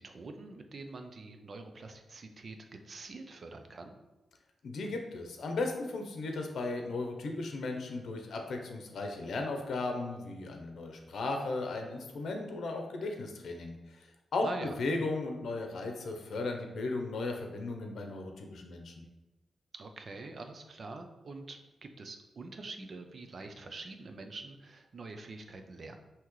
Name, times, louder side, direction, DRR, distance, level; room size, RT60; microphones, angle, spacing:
voice 1, 0.0-2.6 2.8-4.0 14.4-14.7 19.7-26.0, right 3 dB, 45° right, 6 dB, 0.5 m, -45 dB
voice 2, 4.6-19.0, left 3 dB, 75° left, 3 dB, 0.7 m, -36 dB
5.7 x 2.9 x 3.1 m, 1.1 s
wide cardioid pair, 120°, 0 cm